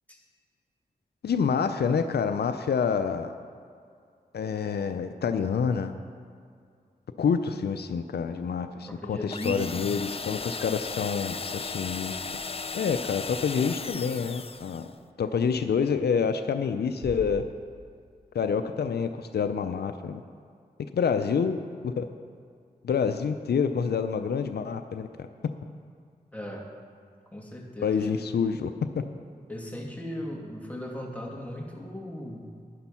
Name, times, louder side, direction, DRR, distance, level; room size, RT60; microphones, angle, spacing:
voice 1, 1.2-3.3 4.3-5.9 7.2-12.2 12.7-14.9 15.2-17.4 18.3-20.2 20.9-21.6 21.8-22.1 22.8-25.3 27.8-28.7, left 6 dB, 90° left, 9 dB, 0.5 m, -27 dB
voice 2, 8.8-9.9 26.3-26.7 27.3-28.2 29.5-32.5, left 1 dB, 10° left, -2 dB, 2.4 m, -37 dB
sound 1, 9.3-14.9, left 4 dB, 35° left, 0.5 m, -36 dB
Bass drum, 17.0-18.4, right 1 dB, 30° right, 1.8 m, -42 dB
10.5 x 10.5 x 5.7 m, 2.2 s
cardioid pair, 50°, 16 cm